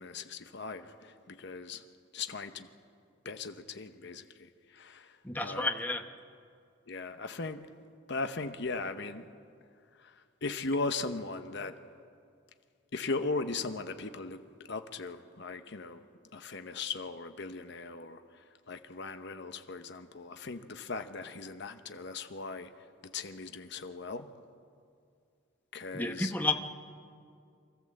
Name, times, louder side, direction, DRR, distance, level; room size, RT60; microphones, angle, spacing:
voice 1, 0.0-1.8 2.1-2.7 3.2-5.7 6.9-7.7 8.1-9.3 10.0-10.1 10.4-11.8 12.9-14.4 14.7-16.0 16.3-22.7 23.1-24.3 25.7-26.6, left 3 dB, 60° left, 8 dB, 0.9 m, -38 dB
voice 2, 5.2-6.0 25.9-26.6, left 2 dB, 10° left, 6 dB, 0.9 m, -31 dB
24.5 x 14.0 x 7.7 m, 2.3 s
head